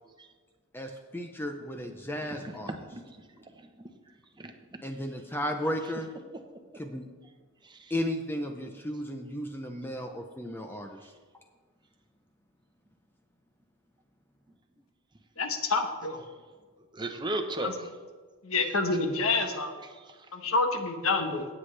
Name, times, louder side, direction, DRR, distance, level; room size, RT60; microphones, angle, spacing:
voice 1, 0.7-2.7 4.8-6.1 6.7-7.1 7.9-11.1, equal, 10° left, 4 dB, 0.5 m, -34 dB
voice 2, 2.3-3.9 4.4-4.8 7.6-7.9 16.9-17.9 19.4-19.6 19.8-20.3, right 1 dB, 20° right, 5 dB, 0.9 m, -38 dB
voice 3, 15.4-16.2 17.6-17.7 18.4-19.7 20.3-21.5, left 3 dB, 65° left, 6 dB, 1.2 m, -28 dB
17.5 x 7.9 x 3.3 m, 1.5 s
head